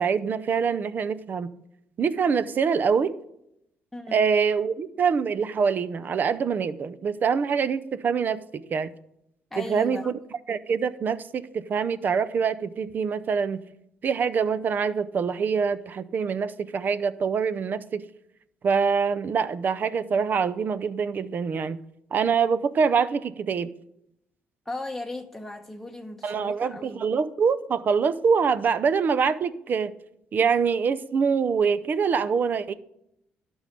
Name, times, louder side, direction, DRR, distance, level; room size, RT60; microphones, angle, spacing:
voice 1, 0.0-1.5 2.0-3.1 4.1-8.9 9.6-10.1 10.5-13.6 14.0-18.0 18.6-21.8 22.1-23.7 26.2-29.9 30.3-32.7, right 6 dB, 50° right, 0.7 m, -25 dB
voice 2, 3.9-4.3 9.5-10.1 24.6-27.0, left 2 dB, 5° left, 1.0 m, -36 dB
12.0 x 5.4 x 6.6 m
cardioid pair, 95°, 4 cm